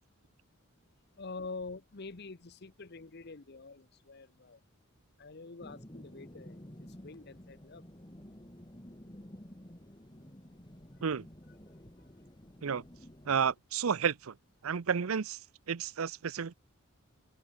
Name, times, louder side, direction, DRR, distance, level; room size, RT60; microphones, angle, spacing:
voice 1, 1.2-4.6 5.2-7.8 12.0-12.1, left 3 dB, 50° left, 0.9 m, -46 dB
sound 1, 5.6-13.5, equal, 20° left, 2.1 m, -52 dB
voice 2, 13.3-14.3 14.6-15.4 15.7-16.5, right 6 dB, 85° right, 0.6 m, -31 dB
head